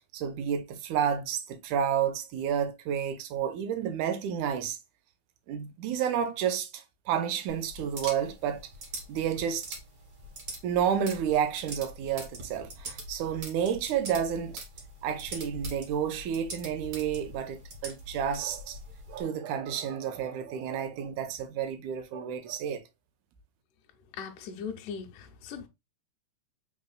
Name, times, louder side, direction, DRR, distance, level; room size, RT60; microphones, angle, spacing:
voice 1, 0.1-4.8 5.5-8.6 9.1-9.7 10.6-14.6 15.0-18.8 19.1-22.8, right 8 dB, 75° right, 2.1 m, -30 dB
sound 1, 7.5-19.2, right 1 dB, 40° right, 1.6 m, -43 dB
voice 2, 24.2-25.7, left 6 dB, 75° left, 2.2 m, -39 dB
5.2 x 4.0 x 2.2 m
omnidirectional pair, 3.8 m